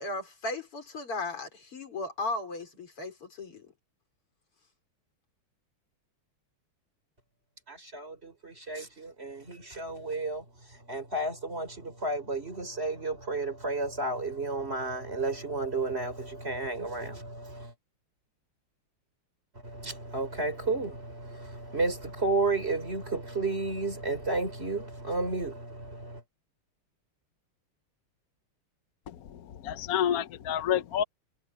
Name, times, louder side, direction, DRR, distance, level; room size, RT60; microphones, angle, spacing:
voice 1, 0.0-3.7, left 2 dB, 85° left, 6.0 m, -36 dB
voice 2, 7.7-10.4 10.7-17.7 19.6-26.2, right 3 dB, 25° right, 3.8 m, -32 dB
voice 3, 29.1-31.0, left 10 dB, 65° left, 0.9 m, -29 dB
omnidirectional pair, 2.4 m